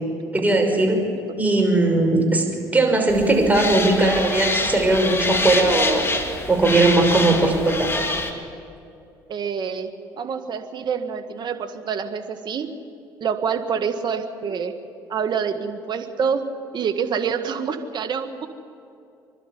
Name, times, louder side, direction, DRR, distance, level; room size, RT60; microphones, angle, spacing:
voice 1, 0.3-1.1 1.4-2.5 2.7-6.0 6.5-7.9, right 2 dB, 15° right, 1 dB, 5.8 m, -19 dB
sound 1, 3.1-8.3, left 2 dB, 25° left, 2.8 m, -26 dB
voice 2, 9.3-9.9 10.2-12.7 13.2-14.7 15.1-16.4 16.7-18.5, right 6 dB, 45° right, 5 dB, 1.8 m, -26 dB
26.0 x 12.0 x 9.7 m, 2.5 s
hypercardioid pair, 60°, 10 cm